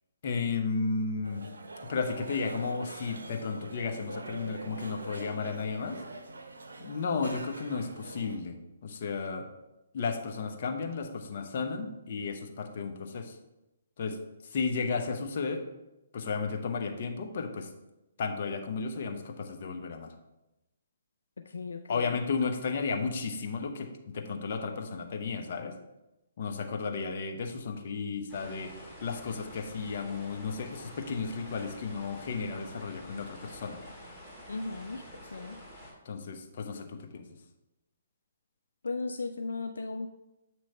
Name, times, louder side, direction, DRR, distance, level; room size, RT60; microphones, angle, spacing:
voice 1, 0.2-1.4 1.9-6.0 6.8-9.5 9.9-13.4 14.0-14.2 14.5-15.6 16.1-17.7 18.2-20.1 21.9-25.7 26.4-33.8 36.0-37.2, left 4 dB, 55° left, 3 dB, 0.8 m, -33 dB
sound 1, 1.2-8.4, right 2 dB, 85° right, 0.7 m, -44 dB
voice 2, 21.4-22.2 34.5-35.0 35.3-35.6 38.8-40.1, left 3 dB, 85° left, 5 dB, 0.3 m, -36 dB
sound 2, 28.3-35.9, equal, ahead, 2.0 m, -48 dB
7.7 x 3.1 x 4.2 m, 0.95 s
hypercardioid pair, 140°, 0 cm